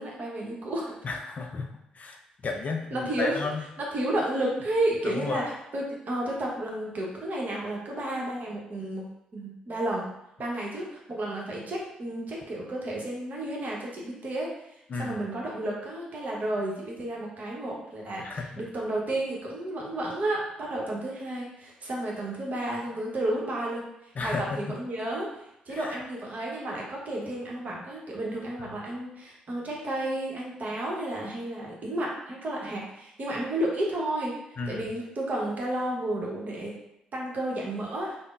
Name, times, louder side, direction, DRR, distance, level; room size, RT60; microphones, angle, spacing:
voice 1, 0.0-1.0 2.9-3.4 3.8-5.4 5.7-9.0 9.3-10.1 10.4-14.5 14.9-25.3 25.7-34.3 34.7-36.7 37.1-38.2, right 1 dB, 50° right, -3 dB, 0.9 m, -32 dB
voice 2, 1.0-1.7 2.0-2.2 2.4-3.6 5.0-5.4 14.9-15.2 18.2-18.5 24.2-24.6 25.7-26.0 28.6-28.7 34.6-34.9, left 3 dB, 45° left, 3 dB, 0.4 m, -32 dB
3.5 x 2.0 x 2.4 m, 0.86 s
hypercardioid pair, 45°, 4 cm